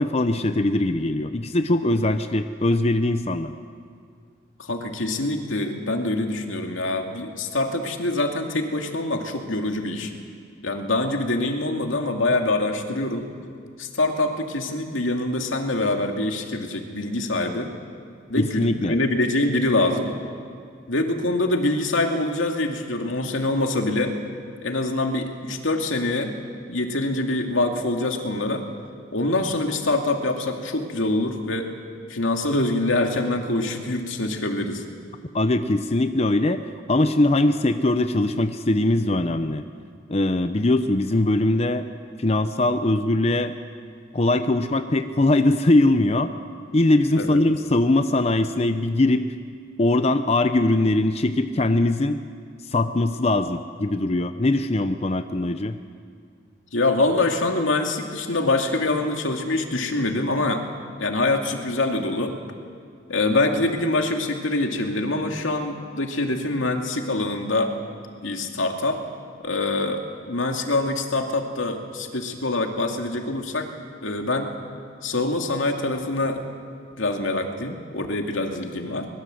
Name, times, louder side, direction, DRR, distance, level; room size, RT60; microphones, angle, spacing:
voice 1, 0.0-3.5 18.4-19.0 35.3-36.6 36.9-39.6 40.1-41.9 42.2-43.5 44.1-46.3 46.7-49.2 49.8-52.2 52.7-55.8, left 2 dB, 30° left, 9 dB, 0.7 m, -21 dB
voice 2, 4.6-10.1 10.6-13.3 13.8-17.7 18.3-20.1 20.9-24.2 24.6-26.3 26.7-28.7 29.1-31.7 32.1-34.8 47.2-47.4 56.7-60.6 61.0-62.4 63.1-67.7 68.2-69.0 69.4-73.7 74.0-74.5 75.0-76.4 76.9-79.1, left 2 dB, 85° left, 3 dB, 2.4 m, -25 dB
23.0 x 21.0 x 7.8 m, 2.2 s
head